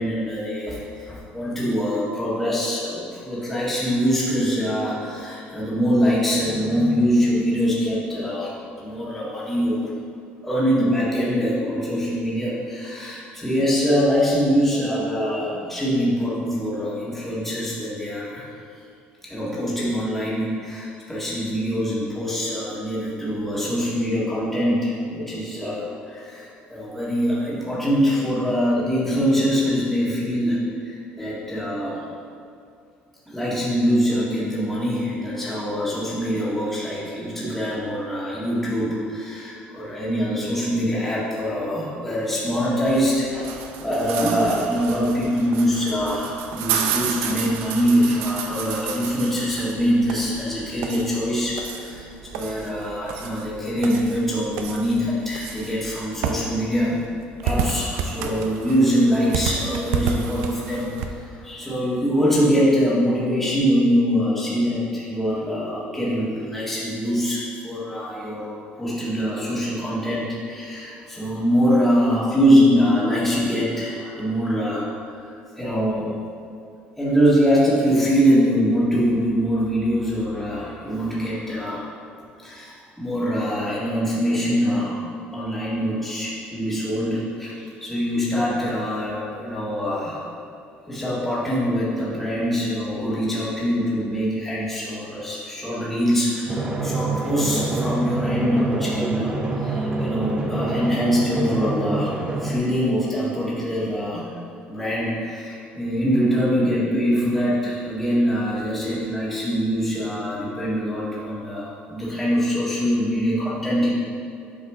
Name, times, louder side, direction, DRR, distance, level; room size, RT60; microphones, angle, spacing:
voice 1, 0.0-9.9 10.4-18.5 19.2-32.0 33.3-57.0 57.4-74.9 75.6-76.2 77.0-81.8 82.4-85.0 85.3-90.3 90.9-104.3 104.7-113.9, equal, 5° left, -8 dB, 1.7 m, -23 dB
sound 1, 42.9-61.1, right 6 dB, 85° right, 0.5 m, -31 dB
Drum, 96.5-102.6, right 2 dB, 25° right, 0.9 m, -26 dB
8.1 x 4.8 x 3.6 m, 2.4 s
cardioid pair, 110°, 4 cm